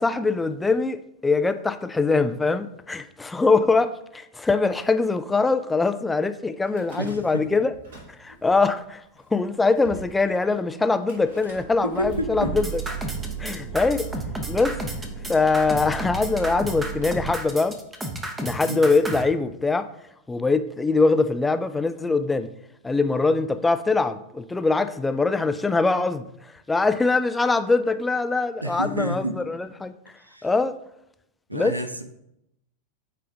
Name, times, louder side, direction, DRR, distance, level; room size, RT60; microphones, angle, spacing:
voice 1, 0.0-7.7 8.2-9.0 9.3-12.6 13.4-14.1 14.5-14.8 15.3-17.8 18.4-19.9 20.3-22.5 22.8-26.2 26.7-29.9 30.4-30.8 31.5-31.7, left 3 dB, 10° left, 0.4 m, -22 dB
Car / Engine starting / Idling, 6.7-7.5 7.7-8.5 9.2-9.3 9.4-9.5 9.8-10.1 11.1-17.3, right 6 dB, 60° right, 2.3 m, -36 dB
voice 2, 7.0-7.5 11.8-12.5 18.7-18.8 28.6-29.4 30.2-30.5 31.5-32.0, right 1 dB, 85° right, 0.5 m, -29 dB
sound 1, 12.4-19.2, right 1 dB, 10° right, 0.9 m, -32 dB
8.3 x 3.3 x 3.9 m
figure-of-eight pair, 90°, 0 cm